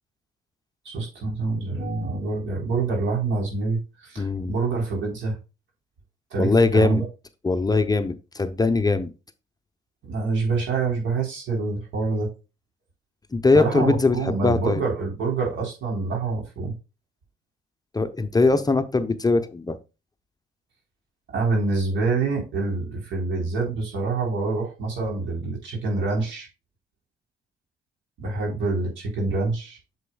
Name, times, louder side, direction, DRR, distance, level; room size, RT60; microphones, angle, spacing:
voice 1, 0.9-5.4 6.3-7.0 10.0-12.3 13.5-16.7 21.3-26.5 28.2-29.8, right 3 dB, 75° right, 0 dB, 3.8 m, -26 dB
voice 2, 4.2-4.5 6.4-7.0 7.4-9.1 13.3-14.8 17.9-19.8, left 3 dB, 20° left, 9 dB, 0.7 m, -21 dB
8.1 x 7.1 x 2.3 m, 0.29 s
cardioid pair, 90°, 20 cm